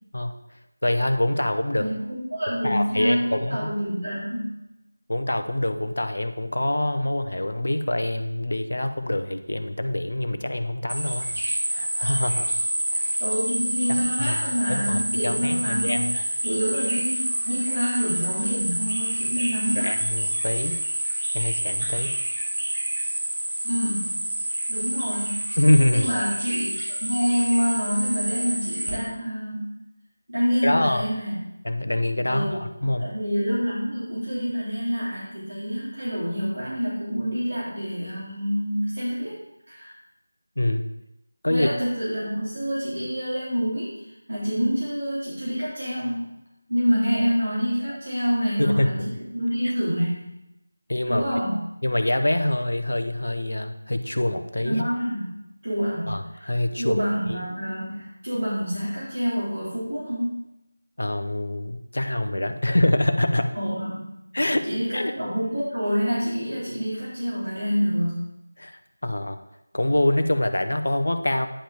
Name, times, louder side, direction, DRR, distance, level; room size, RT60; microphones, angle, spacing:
voice 1, 0.8-1.9 2.6-3.7 5.1-11.3 11.7-12.5 12.9-13.2 13.9-16.2 19.8-20.8 21.3-22.1 25.5-26.1 30.6-31.1 31.6-33.1 40.6-40.9 41.4-41.7 48.6-49.1 49.6-49.7 50.9-51.2 51.8-54.8 56.1-57.0 57.3-57.4 61.0-63.5 64.3-64.7 64.9-65.1 68.6-69.4 69.7-71.5, left 1 dB, 65° left, 8 dB, 0.7 m, -25 dB
voice 2, 1.8-4.6 13.2-16.0 16.4-19.9 23.6-24.2 24.7-25.4 25.9-26.7 27.0-29.7 30.3-31.4 32.3-32.7 33.0-39.4 39.7-39.9 41.5-46.3 46.7-50.3 51.1-51.6 54.6-55.4 55.6-56.5 56.8-60.4 63.5-64.0 64.6-68.2, equal, 65° right, -9 dB, 3.1 m, -27 dB
sound 1, 10.9-28.9, right 1 dB, 45° right, 2.7 m, -28 dB
10.0 x 5.1 x 3.4 m, 0.87 s
figure-of-eight pair, 165°, 0 cm